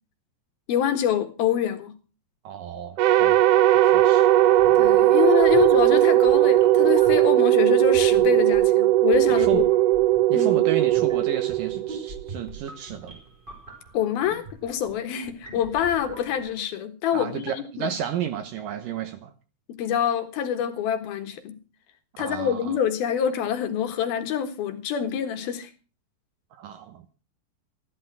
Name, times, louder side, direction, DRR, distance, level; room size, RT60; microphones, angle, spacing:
voice 1, 0.7-2.0 4.8-9.6 10.3-10.6 13.9-17.9 19.7-21.6 22.2-25.7, left 9 dB, 70° left, 3.1 m, -26 dB
voice 2, 2.4-3.4 3.8-4.3 9.5-9.6 10.3-13.2 17.1-19.3 22.2-22.8 26.5-27.0, right 9 dB, 70° right, 2.3 m, -32 dB
sound 1, 3.0-12.3, right 14 dB, 85° right, 1.8 m, -18 dB
sound 2, 4.5-16.6, right 2 dB, 10° right, 4.6 m, -43 dB
15.0 x 12.0 x 6.1 m
omnidirectional pair, 4.8 m